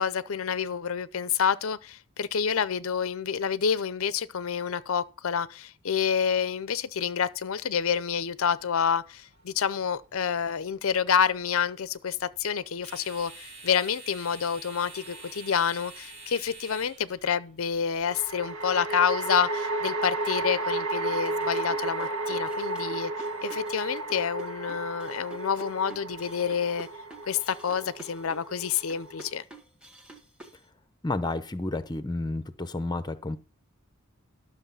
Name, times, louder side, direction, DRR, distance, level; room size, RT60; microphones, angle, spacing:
voice 1, 0.0-23.1 23.4-26.9 27.3-29.4, left 7 dB, 65° left, 0.5 m, -28 dB
sound 1, 7.7-19.0, right 3 dB, 50° right, 2.4 m, -49 dB
sound 2, 15.0-15.7 18.1-29.4, right 2 dB, 70° right, 1.6 m, -33 dB
sound 3, 21.1-30.6, right 2 dB, 5° right, 1.5 m, -49 dB
voice 2, 31.0-33.4, left 2 dB, 20° left, 0.7 m, -31 dB
12.5 x 6.4 x 5.5 m
head